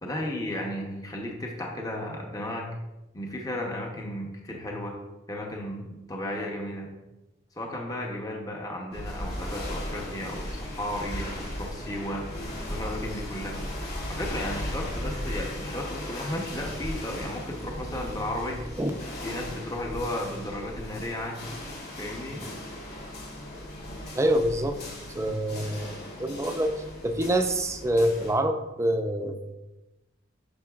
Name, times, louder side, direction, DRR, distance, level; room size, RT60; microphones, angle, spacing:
voice 1, 0.0-2.7 3.1-5.0 5.3-6.9 7.5-12.2 12.7-13.6 14.1-18.6 19.2-21.4 22.0-22.5, left 1 dB, 20° left, 0 dB, 0.8 m, -34 dB
sound 1, 8.9-28.3, left 1 dB, 55° left, 2.2 m, -37 dB
voice 2, 24.1-24.8 25.1-26.7 27.0-29.5, right 1 dB, 15° right, 7 dB, 0.5 m, -26 dB
10.0 x 6.0 x 2.4 m, 1.0 s
head